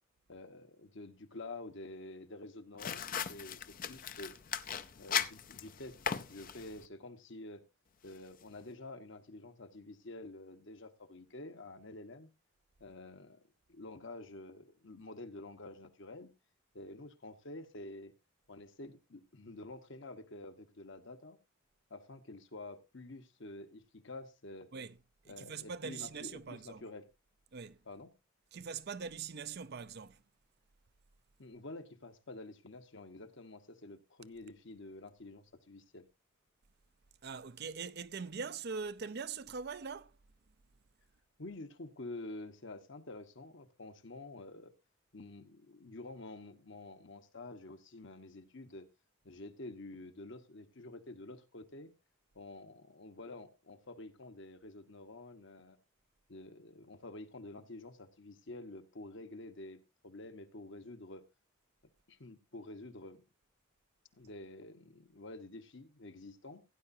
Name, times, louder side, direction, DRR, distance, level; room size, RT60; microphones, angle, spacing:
voice 1, 0.3-4.3 5.0-6.0 6.3-7.6 8.0-12.3 12.8-13.4 13.7-16.3 16.7-18.1 18.5-21.4 21.9-24.7 25.3-27.1 27.8-28.1 31.4-36.0 41.4-44.7 45.1-48.9 49.2-51.9 52.3-55.8 56.3-61.2 62.1-63.2 64.1-66.6, left 2 dB, 55° left, 1.2 m, -49 dB
sound 1, 2.8-6.9, left 8 dB, 40° left, 0.6 m, -38 dB
voice 2, 25.2-26.9 27.5-27.8 28.5-30.2 37.2-40.1, right 5 dB, 50° right, 0.5 m, -42 dB
16.5 x 10.0 x 2.7 m
head